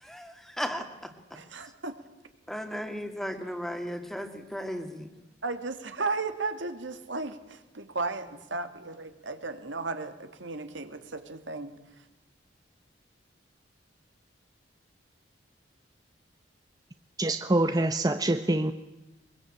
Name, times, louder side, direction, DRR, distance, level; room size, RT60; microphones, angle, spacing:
voice 1, 0.0-1.1 2.5-5.1, equal, ahead, 7 dB, 2.1 m, -35 dB
voice 2, 1.3-1.9 5.4-11.7, right 3 dB, 85° right, 8 dB, 2.5 m, -35 dB
voice 3, 17.2-18.7, right 2 dB, 20° right, 9 dB, 0.8 m, -25 dB
23.5 x 22.0 x 8.8 m, 1.1 s
head